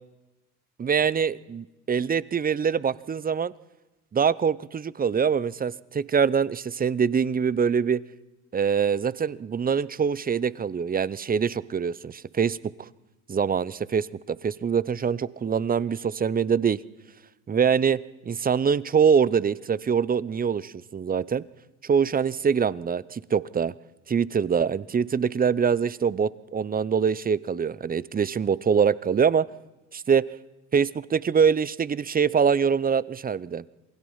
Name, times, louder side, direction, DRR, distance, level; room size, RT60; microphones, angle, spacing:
voice 1, 0.8-3.5 4.1-8.0 8.5-12.9 13.3-16.8 17.5-21.4 21.8-23.7 24.1-29.5 29.9-30.2 30.7-33.6, right 6 dB, 20° right, 20 dB, 0.8 m, -24 dB
27.5 x 20.0 x 5.7 m, 1.1 s
hypercardioid pair, 70°, 40 cm